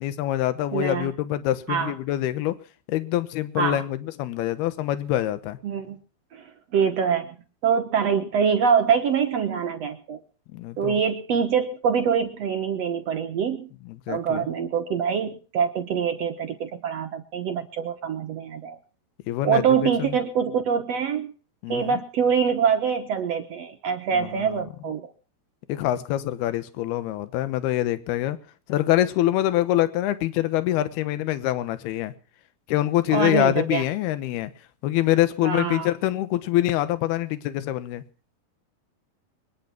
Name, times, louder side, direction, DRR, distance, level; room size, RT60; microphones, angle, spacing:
voice 1, 0.0-2.5 2.9-5.6 10.5-11.0 13.9-14.5 19.3-20.2 21.6-22.0 24.1-24.6 25.7-28.4 28.7-32.1 32.7-34.5 34.8-38.0, left 14 dB, 80° left, 12 dB, 3.1 m, -25 dB
voice 2, 0.7-1.1 1.7-1.9 3.6-3.8 5.6-6.0 6.3-6.4 6.7-7.4 7.6-10.2 10.8-13.7 14.1-18.8 19.4-21.3 21.7-25.0 33.1-33.8 35.4-35.9, right 7 dB, 65° right, 6 dB, 1.6 m, -24 dB
22.5 x 10.5 x 5.9 m, 0.40 s
omnidirectional pair, 4.5 m